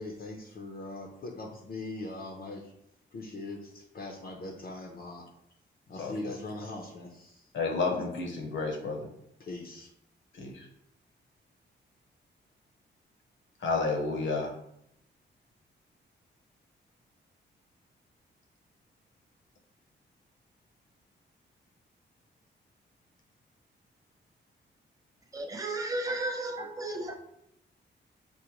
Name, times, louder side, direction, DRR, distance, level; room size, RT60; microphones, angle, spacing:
voice 1, 0.0-2.7 3.1-5.2 5.9-7.4 7.9-8.0 9.4-9.9, left 2 dB, 50° left, 0 dB, 0.5 m, -41 dB
voice 2, 6.0-6.3 7.5-9.1 10.4-10.6 13.6-14.5, left 3 dB, 90° left, 2 dB, 0.8 m, -31 dB
voice 3, 25.3-27.1, right 2 dB, 20° right, 3 dB, 0.5 m, -33 dB
4.9 x 2.1 x 2.9 m, 0.76 s
cardioid pair, 110°, 19 cm